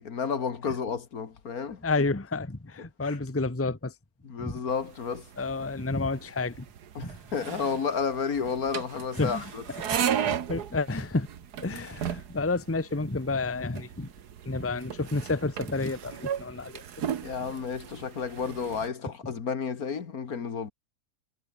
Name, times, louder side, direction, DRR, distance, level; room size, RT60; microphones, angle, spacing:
voice 1, 0.0-1.8 3.0-3.2 4.2-5.3 7.0-9.6 10.0-10.1 17.2-20.7, left 6 dB, 65° left, 2.2 m, -31 dB
voice 2, 1.8-3.9 4.4-4.6 5.4-6.6 7.0-7.2 9.2-9.5 9.8-10.2 10.5-11.3 11.6-14.1 14.4-16.8, left 3 dB, 10° left, 1.1 m, -30 dB
sound 1, 4.7-18.9, right 9 dB, 80° right, 1.8 m, -36 dB
omnidirectional pair, 1.7 m